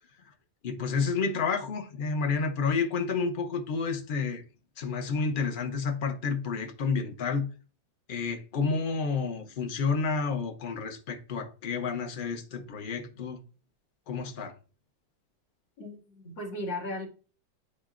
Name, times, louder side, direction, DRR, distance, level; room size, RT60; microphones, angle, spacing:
voice 1, 0.6-4.4 4.8-7.5 8.1-13.4 14.1-14.6, left 5 dB, 85° left, 0.4 m, -30 dB
voice 2, 15.8-17.1, left 1 dB, 70° left, 2.7 m, -36 dB
11.0 x 4.2 x 2.5 m
omnidirectional pair, 2.1 m